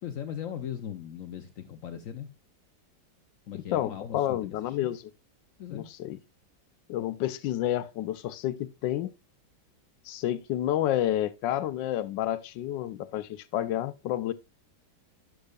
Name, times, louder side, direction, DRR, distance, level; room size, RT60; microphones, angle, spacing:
voice 1, 0.0-2.3 3.5-4.9 5.6-5.9, left 9 dB, 65° left, 0.9 m, -38 dB
voice 2, 3.7-5.0 5.7-6.2 6.9-9.1 10.0-14.3, left 12 dB, 85° left, 1.3 m, -30 dB
11.5 x 6.4 x 2.3 m
omnidirectional pair, 1.9 m